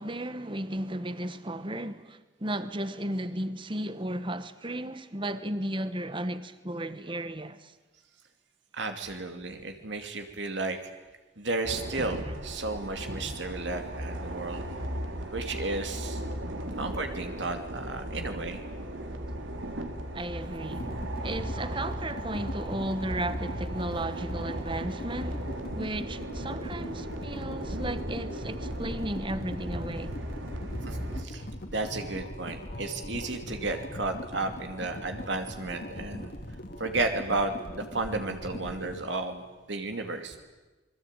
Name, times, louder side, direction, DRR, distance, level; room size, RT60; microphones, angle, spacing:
voice 1, 0.0-7.7 20.1-25.5 25.7-30.1 31.4-31.5, right 1 dB, 25° right, 1.2 m, -34 dB
voice 2, 8.7-10.8 11.4-14.6 15.3-16.2 16.7-18.6 30.8-31.4 31.7-36.3 36.8-40.4, right 3 dB, 65° right, 2.5 m, -33 dB
sound 1, 11.6-31.2, right 1 dB, 85° right, 3.2 m, -37 dB
sound 2, 20.8-39.0, equal, 50° left, 2.7 m, -40 dB
28.0 x 22.0 x 9.0 m
head